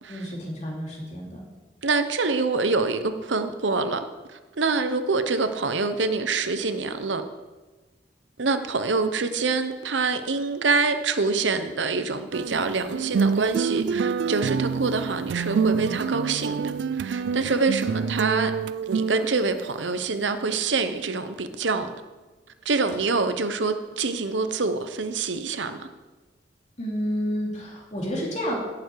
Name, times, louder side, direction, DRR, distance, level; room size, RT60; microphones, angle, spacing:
voice 1, 0.1-1.4 26.8-28.6, equal, 40° left, -2 dB, 3.1 m, -30 dB
voice 2, 1.8-7.2 8.4-18.5 18.9-21.9 22.6-25.9, right 4 dB, 85° right, 9 dB, 0.9 m, -26 dB
sound 1, 12.3-19.7 20.4-20.5, right 5 dB, 65° right, 0.3 m, -27 dB
17.0 x 7.2 x 4.7 m, 1.2 s
head